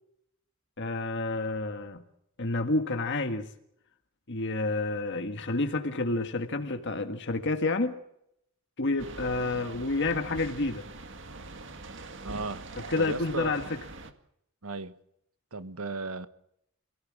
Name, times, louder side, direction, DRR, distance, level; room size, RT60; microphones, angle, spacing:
voice 1, 0.8-2.0 2.4-3.5 4.3-8.0 8.8-10.8 12.8-13.6, left 2 dB, 55° left, 1.7 m, -29 dB
sound 1, 9.0-14.1, right 3 dB, 60° right, 2.0 m, -43 dB
voice 2, 12.2-12.7 13.0-13.7 14.6-15.0 15.5-16.3, right 3 dB, 85° right, 1.5 m, -36 dB
26.5 x 17.5 x 7.5 m
head